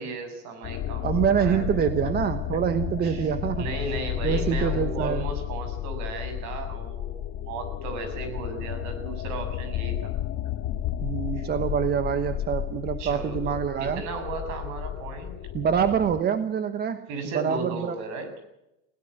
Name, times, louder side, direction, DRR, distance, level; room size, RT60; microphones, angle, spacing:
voice 1, 0.0-1.9 3.0-10.1 11.3-11.5 13.0-15.5 17.1-18.3, right 3 dB, 55° right, 8 dB, 6.9 m, -36 dB
sound 1, 0.6-16.2, left 12 dB, 45° left, 1.5 m, -32 dB
voice 2, 1.0-3.7 4.2-5.3 11.0-14.0 15.5-18.0, right 8 dB, 30° right, 11 dB, 1.1 m, -26 dB
21.5 x 16.5 x 7.7 m, 0.86 s
supercardioid pair, 135°, 34 cm